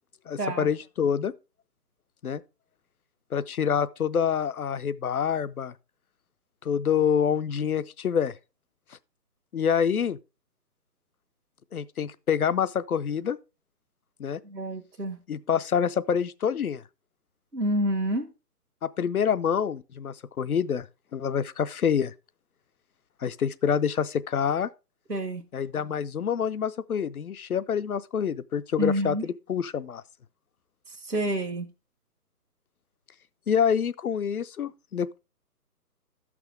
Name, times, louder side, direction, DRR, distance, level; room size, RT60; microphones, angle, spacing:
voice 1, 0.3-1.3 2.2-2.4 3.3-5.7 6.6-8.3 9.5-10.2 11.7-13.4 14.2-14.4 15.3-16.8 18.8-20.9 21.1-22.1 23.2-24.7 25.5-30.0 33.5-35.2, left 7 dB, 70° left, 0.5 m, -27 dB
voice 2, 14.4-15.2 17.5-18.3 25.1-25.4 28.8-29.2 31.1-31.6, right 1 dB, 85° right, 1.3 m, -28 dB
12.0 x 6.0 x 3.3 m
figure-of-eight pair, 145°, 46 cm